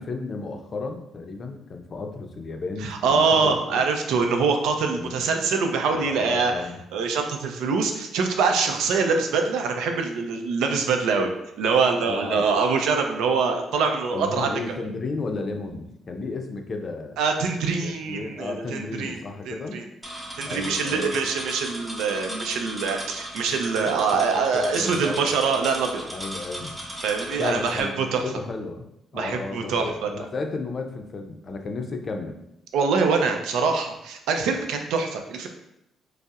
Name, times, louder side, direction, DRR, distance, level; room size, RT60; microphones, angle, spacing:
voice 1, 0.0-3.9 4.9-5.2 5.9-6.8 12.1-12.5 14.1-17.2 17.8-19.8 20.4-21.1 24.1-24.2 24.5-25.3 26.1-26.8 27.4-28.9 29.1-32.4, left 3 dB, 45° left, 4 dB, 0.5 m, -33 dB
voice 2, 2.8-6.5 6.9-11.3 11.6-14.5 14.8-14.9 17.2-19.8 20.4-26.0 27.0-28.2 29.1-30.1 32.7-35.5, right 5 dB, 85° right, 4 dB, 0.4 m, -24 dB
sound 1, 20.0-27.8, equal, 5° right, 0.7 m, -36 dB
5.2 x 2.0 x 2.4 m, 0.83 s
cardioid pair, 90°, 0 cm